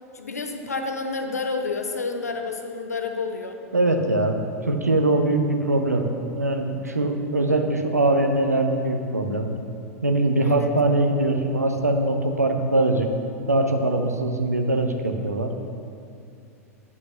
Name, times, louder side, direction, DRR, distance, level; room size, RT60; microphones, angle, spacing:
voice 1, 0.1-3.6 10.4-10.7, left 4 dB, 80° left, 5 dB, 0.8 m, -29 dB
voice 2, 3.7-4.4 4.7-6.1 6.3-9.5 10.0-13.1 13.5-15.5, right 2 dB, 80° right, 4 dB, 0.8 m, -22 dB
8.2 x 5.5 x 6.2 m, 2.5 s
figure-of-eight pair, 90°, 8 cm